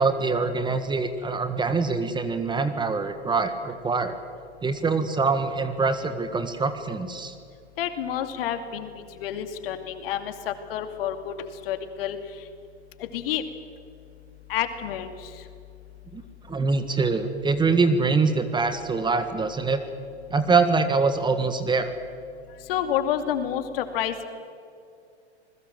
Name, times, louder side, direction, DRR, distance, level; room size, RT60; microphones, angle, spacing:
voice 1, 0.0-4.2 4.6-7.3 16.1-16.2 16.5-19.8 20.3-21.9, right 4 dB, 15° right, 9 dB, 1.7 m, -24 dB
voice 2, 7.8-11.3 11.7-12.2 13.0-13.4 14.5-15.3 22.7-24.2, left 10 dB, 55° left, 8 dB, 2.6 m, -29 dB
27.0 x 21.0 x 7.9 m, 2.3 s
hypercardioid pair, 105°, 34 cm